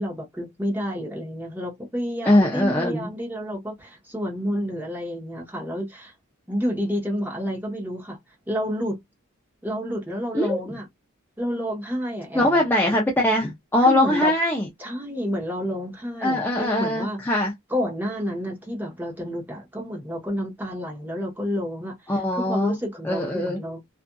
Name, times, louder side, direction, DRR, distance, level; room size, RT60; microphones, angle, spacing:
voice 1, 0.0-6.1 6.5-8.2 8.5-9.0 9.6-10.9 11.4-12.6 13.8-14.3 14.8-17.4 17.7-23.8, equal, 10° right, 0.9 m, -30 dB
voice 2, 2.2-3.1 10.3-10.6 12.3-14.7 16.2-17.5 22.1-22.8 23.0-23.6, left 1 dB, 10° left, 0.5 m, -21 dB
2.5 x 2.5 x 2.2 m
head